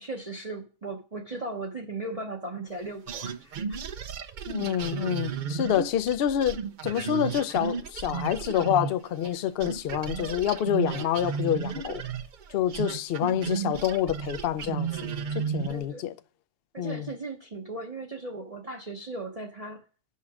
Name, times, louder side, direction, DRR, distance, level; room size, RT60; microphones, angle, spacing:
voice 1, 0.0-3.6 15.7-16.1 16.7-19.8, right 2 dB, 30° right, 0.9 m, -37 dB
sound 1, 3.1-9.4 9.6-15.8, right 7 dB, 55° right, 0.5 m, -33 dB
voice 2, 4.5-12.0 12.5-16.1 16.8-17.1, left 10 dB, 60° left, 0.7 m, -27 dB
9.8 x 5.7 x 6.0 m
omnidirectional pair, 1.4 m